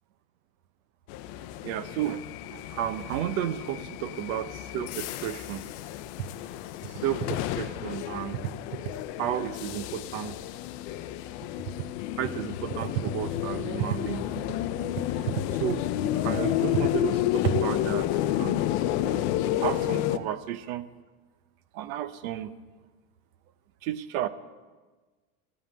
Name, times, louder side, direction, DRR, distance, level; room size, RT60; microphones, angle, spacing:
sound 1, 1.1-20.2, left 13 dB, 50° left, 0.6 m, -31 dB
voice 1, 1.6-2.2 2.5-5.6 6.2-6.3 6.8-8.8 9.2-10.4 11.8-11.9 12.2-18.7 19.0-19.2 19.6-20.9 21.7-22.5 23.8-24.3, right 11 dB, 75° right, 13 dB, 0.8 m, -32 dB
14.5 x 5.7 x 8.5 m, 1.3 s
supercardioid pair, 150°, 43 cm